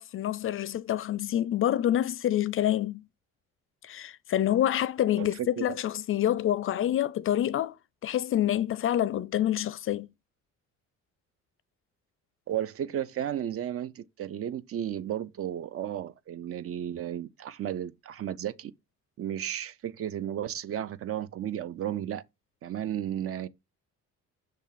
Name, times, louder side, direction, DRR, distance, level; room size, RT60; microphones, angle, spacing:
voice 1, 0.0-3.0 3.8-7.8 8.0-10.1, left 11 dB, 45° left, 0.4 m, -27 dB
voice 2, 5.2-5.8 12.5-18.7 19.2-22.2 22.6-23.5, right 10 dB, 50° right, 0.6 m, -33 dB
6.5 x 3.5 x 5.8 m
cardioid pair, 115°, 30 cm